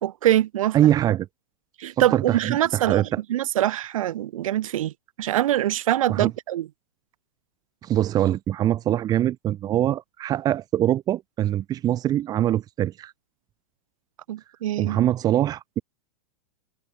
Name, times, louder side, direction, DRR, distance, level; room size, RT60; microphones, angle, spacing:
voice 1, 0.0-0.9 1.8-4.9 5.2-6.7 14.3-15.1, right 13 dB, 65° right, 4.1 m, -24 dB
voice 2, 0.7-1.3 2.1-3.2 6.1-6.3 7.8-13.1 14.8-15.8, right 12 dB, 20° right, 4.4 m, -23 dB
supercardioid pair, 170°, 19 cm